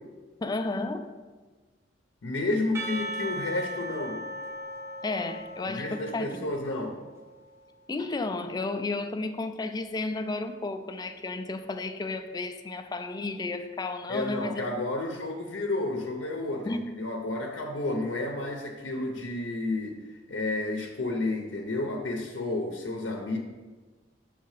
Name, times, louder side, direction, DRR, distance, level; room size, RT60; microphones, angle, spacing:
voice 1, 0.4-1.1 5.0-6.5 7.9-14.7 16.7-16.9, left 3 dB, 20° left, 0.3 m, -32 dB
voice 2, 2.2-4.2 5.7-7.0 14.1-20.0 20.3-23.4, left 2 dB, 75° left, 0.6 m, -31 dB
Percussion / Church bell, 2.7-7.3, right 1 dB, 15° right, 0.6 m, -38 dB
6.5 x 3.4 x 4.8 m
head